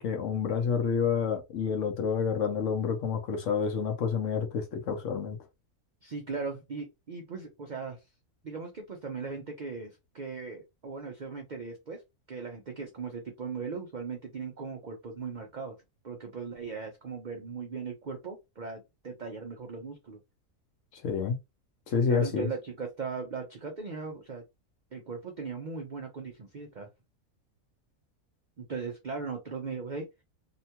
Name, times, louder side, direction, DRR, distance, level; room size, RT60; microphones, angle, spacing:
voice 1, 0.0-5.4 20.9-21.4 21.9-22.5, left 6 dB, 65° left, 0.9 m, -29 dB
voice 2, 6.0-8.0 8.4-12.0 12.3-15.8 16.0-20.2 22.1-24.4 24.9-26.9 28.6-30.1, right 5 dB, 75° right, 0.4 m, -38 dB
2.9 x 2.2 x 2.8 m
omnidirectional pair, 1.6 m